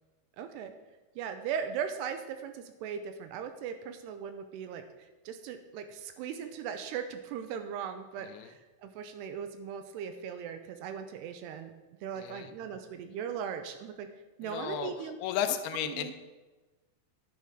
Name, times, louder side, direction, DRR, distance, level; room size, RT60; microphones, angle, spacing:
voice 1, 0.4-0.7 1.2-11.7 12.0-14.1 14.4-15.2 15.8-16.1, right 7 dB, 80° right, 8 dB, 2.6 m, -38 dB
voice 2, 12.2-12.5 14.4-14.9 15.2-16.2, left 10 dB, 75° left, 8 dB, 2.4 m, -34 dB
10.5 x 9.3 x 4.7 m, 1.2 s
omnidirectional pair, 5.0 m